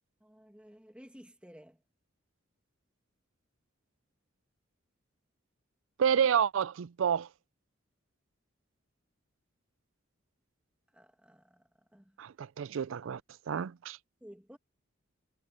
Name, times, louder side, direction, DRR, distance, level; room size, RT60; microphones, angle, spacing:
voice 1, 0.2-1.8 10.9-12.2 14.2-14.6, equal, 5° right, 1.8 m, -54 dB
voice 2, 6.0-7.3 12.2-13.2 13.5-14.0, right 8 dB, 70° right, 0.4 m, -29 dB
head